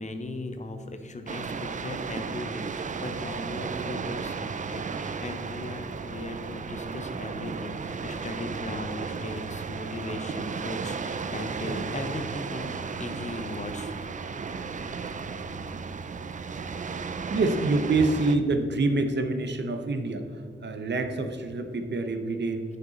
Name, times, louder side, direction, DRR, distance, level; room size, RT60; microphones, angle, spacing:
voice 1, 0.0-13.9, left 2 dB, 35° left, 6 dB, 0.7 m, -38 dB
sound 1, 1.3-18.4, right 5 dB, 40° right, 0.4 m, -34 dB
voice 2, 17.3-20.3 20.6-22.6, right 3 dB, 60° right, 7 dB, 0.7 m, -26 dB
9.5 x 5.5 x 3.9 m, 2.3 s
wide cardioid pair, 155°, 20 cm